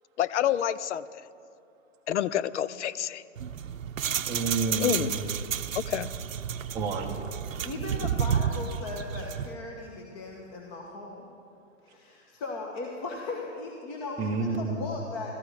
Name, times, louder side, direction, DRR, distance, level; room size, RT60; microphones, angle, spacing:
voice 1, 0.2-1.3 2.1-3.2 4.8-5.1 5.7-6.1, left 10 dB, 65° left, 17 dB, 0.6 m, -28 dB
sound 1, 3.4-9.5, right 8 dB, 85° right, 0.8 m, -31 dB
voice 2, 4.3-5.3 6.7-7.2 14.2-14.7, right 3 dB, 10° right, -3 dB, 0.7 m, -30 dB
voice 3, 7.6-11.2 11.8-15.3, left 3 dB, 30° left, 0 dB, 1.4 m, -37 dB
14.5 x 14.0 x 4.9 m, 2.5 s
hypercardioid pair, 130°, 39 cm